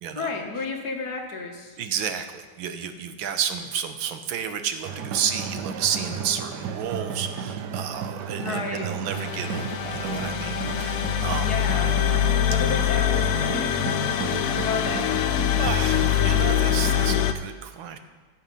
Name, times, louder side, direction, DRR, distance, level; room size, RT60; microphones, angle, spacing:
voice 1, 0.2-1.8 8.4-8.9 11.4-12.0 12.5-13.7 14.6-15.0, left 4 dB, 55° left, 1 dB, 1.8 m, -32 dB
voice 2, 1.8-11.5 14.2-14.6 15.6-18.0, right 8 dB, 85° right, 8 dB, 1.6 m, -31 dB
sound 1, 4.8-17.3, right 6 dB, 70° right, 1.2 m, -33 dB
sound 2, 9.1-17.3, left 10 dB, 85° left, 0.7 m, -24 dB
13.0 x 7.3 x 5.5 m, 1.4 s
omnidirectional pair, 2.1 m